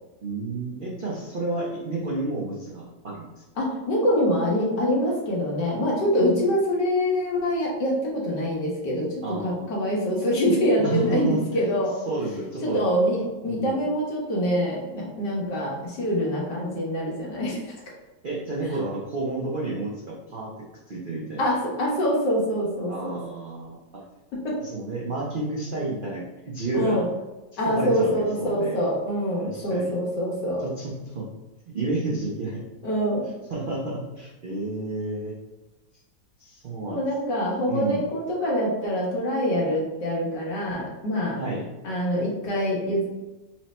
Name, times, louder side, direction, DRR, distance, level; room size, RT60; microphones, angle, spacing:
voice 1, 0.2-3.3 9.2-9.7 10.8-11.6 12.1-12.8 13.5-13.9 18.2-20.5 20.9-21.4 22.9-23.8 24.7-27.1 27.7-28.8 29.4-29.9 30.6-31.3 31.7-32.6 33.5-35.3 36.4-37.0 37.7-38.0 41.4-41.6, right 2 dB, 70° right, -4 dB, 0.5 m, -30 dB
voice 2, 3.6-9.1 9.4-12.0 12.6-17.7 21.4-23.2 24.4-24.6 26.7-27.1 27.6-30.7 32.8-33.3 36.9-41.4 41.8-43.1, equal, 75° left, -4 dB, 1.8 m, -25 dB
4.5 x 2.1 x 4.2 m, 1.1 s
omnidirectional pair, 1.9 m